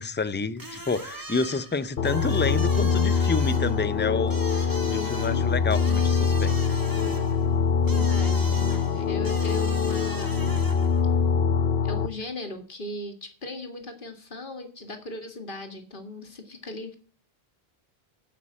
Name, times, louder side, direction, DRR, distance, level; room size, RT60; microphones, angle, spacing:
voice 1, 0.0-4.4 4.9-6.8, left 4 dB, 15° left, 0.3 m, -29 dB
sound 1, 0.6-11.0, right 2 dB, 20° right, 1.2 m, -41 dB
sound 2, 2.0-12.1, left 6 dB, 70° left, 1.0 m, -24 dB
voice 2, 4.9-5.5 7.8-10.6 11.8-17.0, left 2 dB, 50° left, 2.1 m, -38 dB
8.4 x 7.4 x 8.5 m
omnidirectional pair, 1.1 m